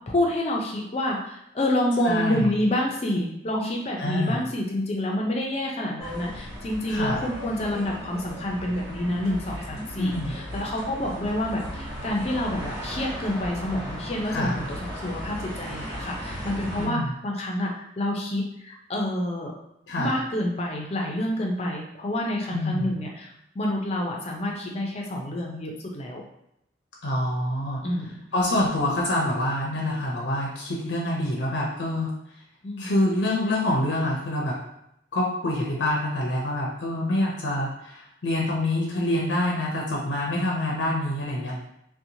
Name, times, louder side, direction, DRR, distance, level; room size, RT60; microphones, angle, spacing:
voice 1, 0.1-19.5 20.0-26.2 27.8-28.2 32.6-32.9, left 1 dB, 35° left, 0 dB, 0.5 m, -28 dB
voice 2, 2.0-2.5 4.0-4.4 6.9-7.2 10.0-10.3 14.3-14.6 16.8-17.1 19.9-20.2 22.5-22.9 27.0-27.8 28.3-32.1 32.8-34.6 35.1-41.6, left 1 dB, 80° left, -3 dB, 0.6 m, -26 dB
sound 1, 6.0-16.9, equal, 10° right, 1.3 m, -36 dB
2.8 x 2.1 x 2.6 m, 0.79 s
head